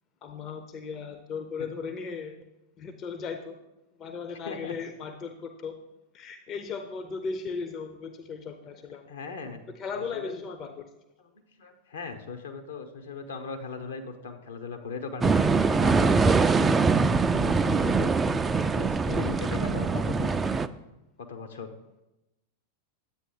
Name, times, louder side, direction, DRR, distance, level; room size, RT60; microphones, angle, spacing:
voice 1, 0.2-2.4 2.8-3.6 4.0-5.7 6.1-9.1 9.7-10.8 19.1-19.4, left 5 dB, 30° left, 7 dB, 0.7 m, -37 dB
voice 2, 9.0-9.6 9.9-10.3 11.2-11.3 11.6-16.9 17.3-18.1 18.5-20.4 21.3-21.7, left 4 dB, 65° left, 5 dB, 1.1 m, -38 dB
sound 1, 15.2-20.7, right 4 dB, 15° right, 0.4 m, -23 dB
10.0 x 8.2 x 3.9 m, 0.95 s
figure-of-eight pair, 90°, 0 cm